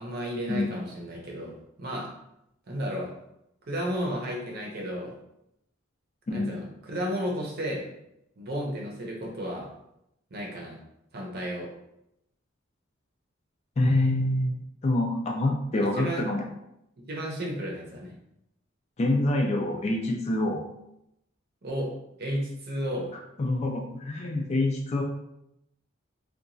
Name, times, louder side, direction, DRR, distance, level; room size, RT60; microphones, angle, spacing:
voice 1, 0.0-2.1 2.7-3.1 3.6-5.1 6.3-7.9 8.4-9.7 10.3-10.8 11.1-11.7 15.7-16.2 17.1-18.1 21.6-21.9 22.2-23.1, equal, 50° right, -1 dB, 0.7 m, -33 dB
voice 2, 13.8-16.4 19.0-20.6 23.4-25.0, left 2 dB, 30° left, 1 dB, 0.3 m, -26 dB
2.8 x 2.3 x 2.5 m, 0.82 s
head